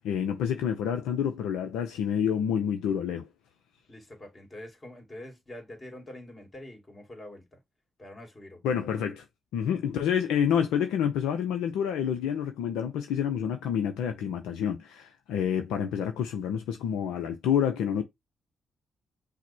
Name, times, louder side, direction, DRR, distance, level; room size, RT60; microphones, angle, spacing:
voice 1, 0.0-3.3 8.6-9.2 9.5-18.0, left 8 dB, 75° left, 0.5 m, -28 dB
voice 2, 3.9-7.6 8.0-8.8, left 1 dB, 30° left, 2.4 m, -45 dB
5.7 x 2.1 x 4.3 m
hypercardioid pair, 40°, 0 cm